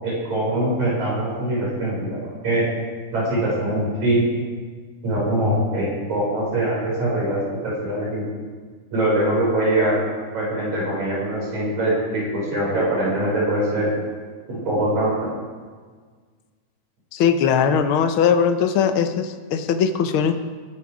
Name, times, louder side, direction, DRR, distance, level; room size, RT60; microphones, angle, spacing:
voice 1, 0.0-2.6 3.1-4.2 5.0-8.3 8.9-10.0 10.3-13.9 14.5-15.3, right 1 dB, 65° right, -5 dB, 6.6 m, -23 dB
voice 2, 17.1-20.3, left 7 dB, 65° left, 7 dB, 1.3 m, -20 dB
21.5 x 11.0 x 4.9 m, 1.5 s
omnidirectional pair, 3.6 m